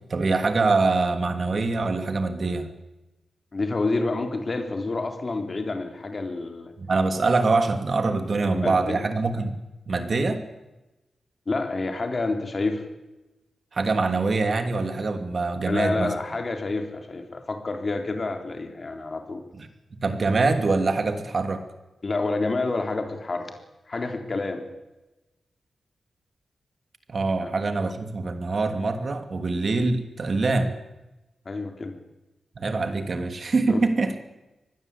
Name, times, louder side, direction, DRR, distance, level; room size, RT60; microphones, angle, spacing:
voice 1, 0.1-2.7 6.8-9.6 9.9-10.4 13.7-16.1 19.5-19.7 20.0-21.6 27.1-30.7 32.6-34.1, right 3 dB, 45° right, 8 dB, 2.7 m, -24 dB
voice 2, 3.5-6.7 8.4-9.0 11.5-12.9 15.7-19.5 22.0-23.5 23.9-24.7 27.4-27.5 31.5-31.9 33.7-33.8, left 3 dB, 35° left, 5 dB, 3.8 m, -28 dB
24.5 x 19.5 x 8.5 m, 1.0 s
wide cardioid pair, 150°, 0 cm